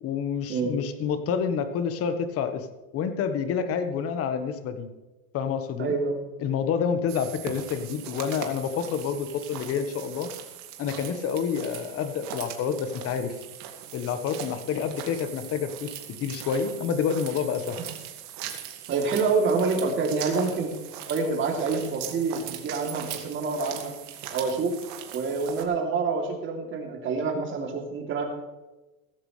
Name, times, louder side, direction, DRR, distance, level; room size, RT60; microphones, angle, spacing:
voice 1, 0.0-2.7 2.9-4.9 5.3-5.9 6.4-10.3 10.8-13.4 13.9-15.9 16.2-17.8, left 7 dB, 35° left, 9 dB, 1.4 m, -28 dB
voice 2, 5.8-6.2 18.9-20.7 21.1-23.9 24.3-24.8 25.1-28.3, right 4 dB, 30° right, 1 dB, 3.1 m, -27 dB
sound 1, 7.1-25.6, right 9 dB, 45° right, 2.2 m, -40 dB
16.5 x 14.5 x 3.4 m, 1.1 s
supercardioid pair, 135°, 41 cm